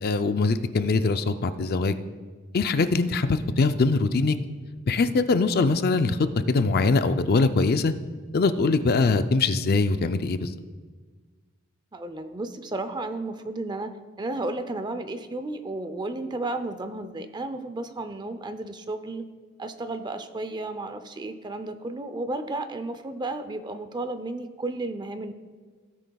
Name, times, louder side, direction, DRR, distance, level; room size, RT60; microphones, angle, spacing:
voice 1, 0.0-1.9 2.5-4.4 4.9-6.2 6.5-7.9 8.3-10.5, left 3 dB, 45° left, 10 dB, 0.4 m, -22 dB
voice 2, 11.9-13.9 14.2-19.3 19.6-25.3, right 2 dB, 20° right, 10 dB, 0.5 m, -33 dB
16.5 x 9.2 x 2.3 m, 1.5 s
head